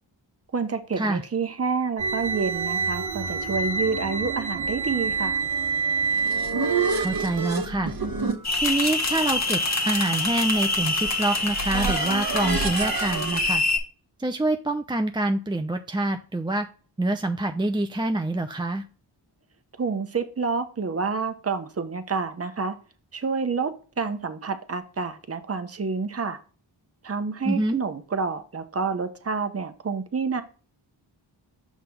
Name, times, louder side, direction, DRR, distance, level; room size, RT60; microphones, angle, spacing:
voice 1, 0.5-5.4 19.8-22.7 23.1-26.4 27.0-30.4, right 5 dB, 30° right, 0.9 m, -28 dB
sound 1, 2.0-7.5, right 4 dB, 85° right, 1.1 m, -27 dB
sound 2, 5.9-13.4, right 4 dB, 50° right, 1.2 m, -30 dB
voice 2, 7.0-7.9 8.6-13.6 14.2-16.7 17.0-18.8 27.4-27.8, right 2 dB, 10° right, 0.6 m, -26 dB
sound 3, 8.4-13.8, left 2 dB, 35° left, 1.5 m, -26 dB
5.9 x 3.6 x 5.6 m
cardioid pair, 45°, 47 cm